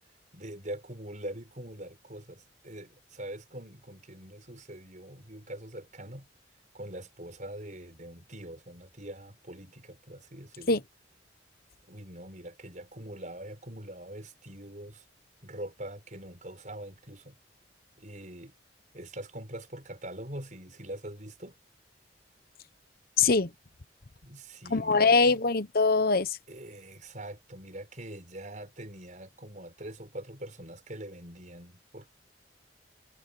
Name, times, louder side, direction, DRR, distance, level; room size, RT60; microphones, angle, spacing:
voice 1, 0.3-6.3 6.7-10.8 11.8-15.0 15.4-17.4 18.0-18.6 18.9-21.6 24.2-25.4 26.5-32.1, right 1 dB, 40° right, 6.0 m, -43 dB
voice 2, 23.2-23.5 24.7-26.4, left 4 dB, 50° left, 1.0 m, -23 dB
head